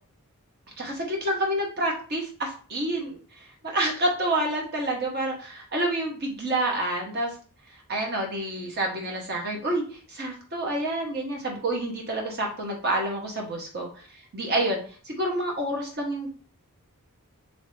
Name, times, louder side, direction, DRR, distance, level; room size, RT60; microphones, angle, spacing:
voice 1, 0.8-7.3 7.9-14.8 15.0-16.3, right 1 dB, 45° right, 0 dB, 1.0 m, -28 dB
3.2 x 2.7 x 3.1 m, 0.41 s
head